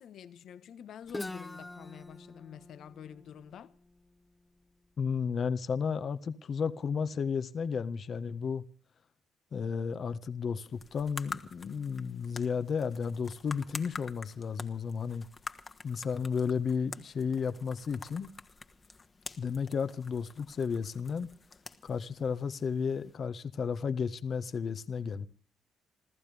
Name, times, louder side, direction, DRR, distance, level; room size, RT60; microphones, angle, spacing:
voice 1, 0.0-3.7, left 9 dB, 70° left, 1.4 m, -48 dB
Guitar, 1.1-4.9, left 2 dB, 15° left, 0.8 m, -45 dB
voice 2, 5.0-8.6 9.5-15.2 15.8-18.3 19.4-21.3 21.8-25.3, left 6 dB, 50° left, 1.4 m, -33 dB
sound 1, 10.7-23.1, left 4 dB, 30° left, 1.7 m, -47 dB
28.0 x 14.5 x 3.5 m
cardioid pair, 90°, 0 cm